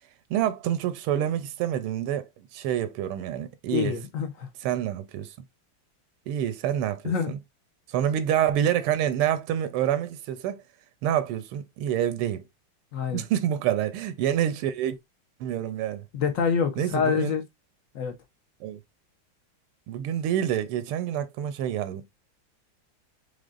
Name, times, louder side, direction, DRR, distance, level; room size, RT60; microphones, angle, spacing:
voice 1, 0.3-4.0 4.6-5.3 6.3-7.4 7.9-10.6 11.0-12.4 13.1-15.0 15.4-16.0 16.8-17.4 18.6-18.8 19.9-22.0, right 10 dB, 90° right, 1.6 m, -27 dB
voice 2, 3.7-4.5 7.0-7.3 12.9-13.2 16.1-17.4 17.9-18.1, left 6 dB, 65° left, 0.8 m, -26 dB
5.1 x 3.8 x 2.4 m
omnidirectional pair, 2.4 m